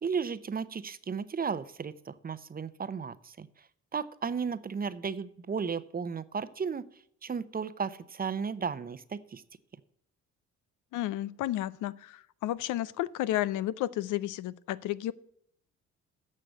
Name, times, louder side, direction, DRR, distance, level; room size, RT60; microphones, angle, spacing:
voice 1, 0.0-3.5 3.9-6.8 7.2-9.4, right 6 dB, 30° right, 15 dB, 0.7 m, -34 dB
voice 2, 10.9-15.1, left 14 dB, 90° left, 17 dB, 0.6 m, -32 dB
9.9 x 6.6 x 8.1 m, 0.71 s
cardioid pair, 90°, 30 cm